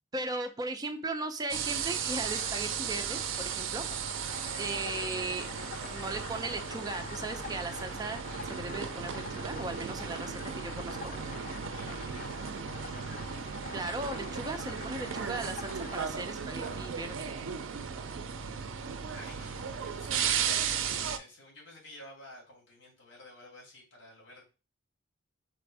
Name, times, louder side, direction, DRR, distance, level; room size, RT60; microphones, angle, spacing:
voice 1, 0.1-3.8 4.6-5.5 5.9-11.1 13.7-17.3, right 2 dB, 20° right, 6 dB, 0.5 m, -37 dB
sound 1, 1.5-21.2, right 7 dB, 75° right, 0.4 m, -36 dB
sound 2, 1.8-17.0, left 5 dB, 45° left, 0.4 m, -46 dB
voice 2, 11.7-12.9 19.1-24.4, left 2 dB, 70° left, -2 dB, 2.3 m, -52 dB
sound 3, 16.8-20.7, left 2 dB, 5° left, 0.9 m, -56 dB
4.2 x 2.5 x 4.6 m, 0.33 s
head